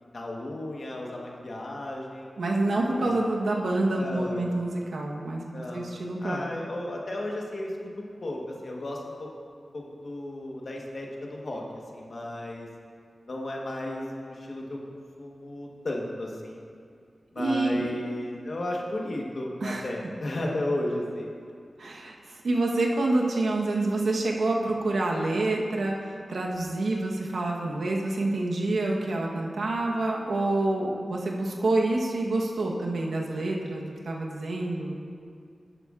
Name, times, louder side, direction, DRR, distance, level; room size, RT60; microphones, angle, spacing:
voice 1, 0.0-2.3 2.9-3.2 4.0-4.5 5.5-5.9 6.2-11.6 11.9-12.7 13.3-16.6 17.3-21.3, left 1 dB, 50° left, -1 dB, 1.2 m, -34 dB
voice 2, 2.4-5.4 5.7-6.4 17.4-17.9 19.6-19.8 21.8-35.0, right 2 dB, 85° right, -1 dB, 1.1 m, -27 dB
12.5 x 9.0 x 2.5 m, 2.3 s
wide cardioid pair, 120°, 0 cm